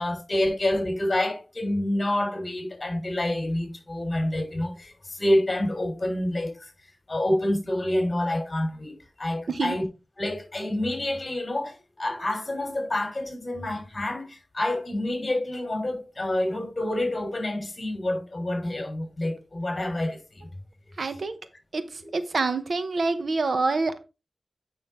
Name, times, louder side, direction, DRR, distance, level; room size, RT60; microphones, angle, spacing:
voice 1, 0.0-6.7 7.1-9.8 10.2-20.2, left 1 dB, 30° left, 3.5 m, -28 dB
voice 2, 9.5-9.8 21.0-21.4 21.7-24.0, right 3 dB, 65° right, 0.9 m, -26 dB
9.0 x 5.8 x 3.6 m
wide cardioid pair, 110°, 0 cm